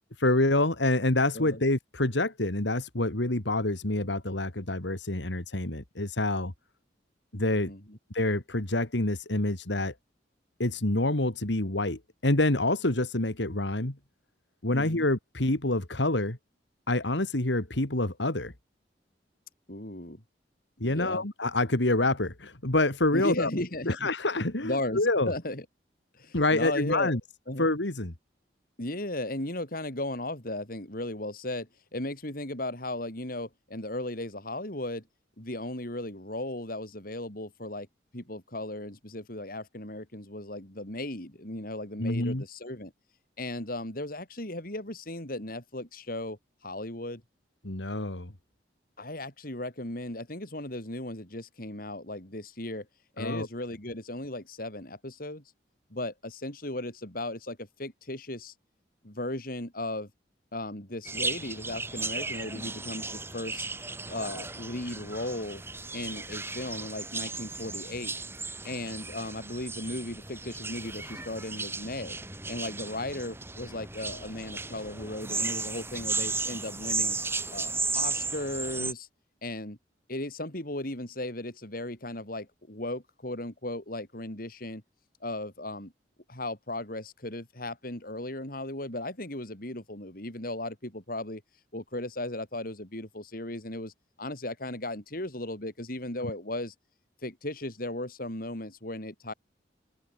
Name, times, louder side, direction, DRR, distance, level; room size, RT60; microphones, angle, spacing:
voice 1, 0.2-6.5 7.3-7.7 8.1-9.9 10.6-14.0 14.6-16.4 16.9-18.5 20.8-23.5 23.9-25.3 26.3-27.2 27.6-28.1 42.0-42.4 47.6-48.3 53.2-53.5, left 2 dB, 80° left, 2.7 m, -27 dB
voice 2, 7.7-8.0 14.7-15.0 19.7-20.2 20.8-21.3 23.1-24.1 24.6-25.0 25.3-25.6 26.1-27.2 27.5-27.7 28.8-35.0 35.4-37.9 38.1-42.9 43.4-46.4 46.6-47.2 49.0-52.9 53.2-55.4 55.9-58.5 59.0-60.1 60.5-63.7 64.1-65.6 65.9-68.1 68.6-72.2 72.5-77.2 77.5-79.1 79.4-79.8 80.1-84.8 85.2-85.9 86.3-91.4 91.7-93.9 94.2-96.7 97.2-99.3, left 1 dB, 50° left, 4.7 m, -36 dB
sound 1, 61.0-78.9, right 3 dB, 15° right, 5.0 m, -35 dB
open air
head